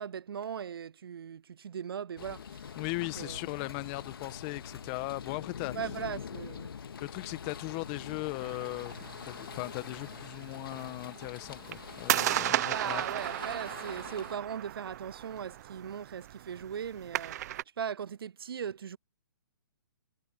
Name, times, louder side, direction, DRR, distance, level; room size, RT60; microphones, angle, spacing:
voice 1, 0.0-3.4 5.7-6.8 12.7-17.4 17.8-19.0, right 8 dB, 75° right, 0.5 m, -39 dB
sound 1, 2.2-14.4, left 7 dB, 70° left, 3.2 m, -46 dB
Engine, 2.6-11.1, left 6 dB, 85° left, 1.0 m, -49 dB
voice 2, 2.8-5.7 7.0-8.9 9.2-13.0, left 28 dB, 30° left, 1.7 m, -38 dB
sound 2, 8.4-17.6, right 13 dB, 45° right, 1.0 m, -36 dB
hypercardioid pair, 140°, 12 cm